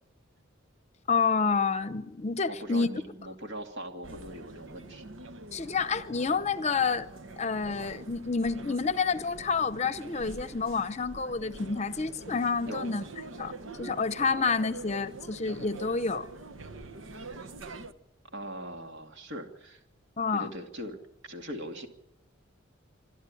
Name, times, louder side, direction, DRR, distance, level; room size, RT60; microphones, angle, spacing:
voice 1, 1.1-2.9 5.5-7.1 7.4-13.0 13.4-13.5 13.8-16.3 20.2-20.5, left 5 dB, 35° left, 0.7 m, -29 dB
voice 2, 2.5-5.0 12.6-12.9 18.3-19.8 20.3-21.9, right 1 dB, 60° right, 2.5 m, -40 dB
sound 1, 4.0-17.9, right 3 dB, 85° right, 1.1 m, -45 dB
26.5 x 12.5 x 9.9 m
head